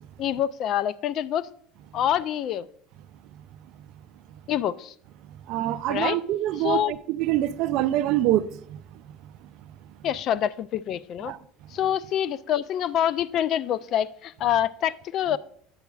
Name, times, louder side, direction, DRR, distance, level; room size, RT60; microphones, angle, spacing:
voice 1, 0.2-1.5 1.9-2.7 4.5-4.9 5.9-6.2 6.6-6.9 10.0-11.3 11.7-15.4, left 10 dB, 55° left, 0.3 m, -26 dB
voice 2, 5.5-8.4, right 14 dB, 65° right, 0.4 m, -24 dB
9.2 x 7.8 x 2.4 m
supercardioid pair, 95°, 0 cm